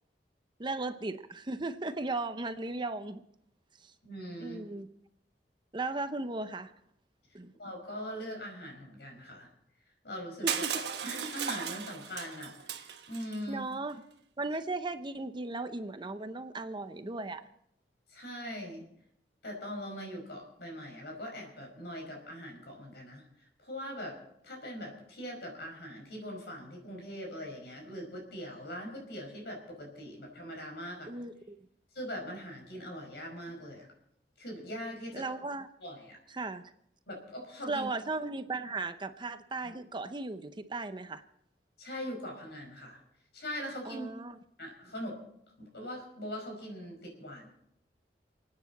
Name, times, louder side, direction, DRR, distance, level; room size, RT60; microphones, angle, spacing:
voice 1, 0.6-3.2 3.8-3.9 4.4-4.9 5.7-6.7 7.3-7.5 10.4-10.8 13.5-14.0 14.4-17.4 31.1-31.6 35.1-35.7 36.3-36.7 37.7-41.2 43.8-44.4, right 3 dB, 25° right, 0.7 m, -36 dB
voice 2, 4.0-4.6 7.6-9.5 10.0-13.7 18.1-18.9 19.4-23.2 23.6-24.2 24.4-31.1 31.9-33.9 34.4-35.3 35.8-36.2 37.1-37.9 39.6-39.7 41.8-43.0 43.3-44.1 44.6-45.2 45.6-47.5, equal, 65° left, 5.5 m, -41 dB
Crushing, 10.5-13.4, right 8 dB, 70° right, 1.3 m, -36 dB
29.0 x 9.7 x 4.1 m
head